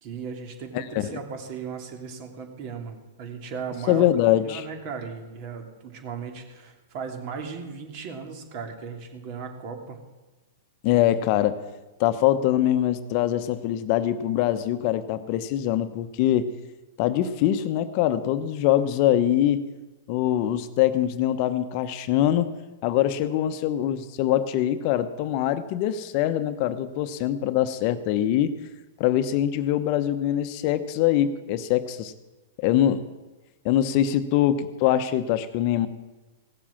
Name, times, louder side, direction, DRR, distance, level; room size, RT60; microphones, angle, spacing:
voice 1, 0.0-4.0 4.4-10.0, right 5 dB, 45° right, 4 dB, 2.8 m, -37 dB
voice 2, 0.7-1.1 3.9-4.6 10.8-11.6 12.0-16.5 17.0-19.7 20.1-22.5 22.8-28.6 29.0-32.1 32.6-33.1 33.6-35.9, left 12 dB, 45° left, 12 dB, 0.9 m, -23 dB
16.5 x 7.4 x 7.2 m, 1.1 s
hypercardioid pair, 120°, 0 cm